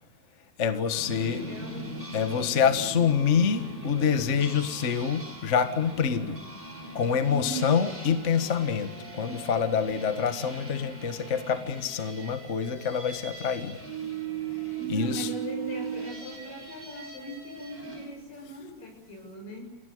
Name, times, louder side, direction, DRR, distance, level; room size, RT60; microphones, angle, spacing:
voice 1, 0.6-1.4 2.1-6.4 6.9-13.8 14.9-15.3, left 7 dB, 50° left, 9 dB, 0.8 m, -26 dB
sound 1, 0.9-18.1, right 4 dB, 15° right, 4.9 m, -39 dB
voice 2, 1.2-2.0 7.3-7.8 14.8-19.8, right 1 dB, 80° left, 3 dB, 8.3 m, -38 dB
28.5 x 17.5 x 9.4 m, 0.95 s
omnidirectional pair, 3.9 m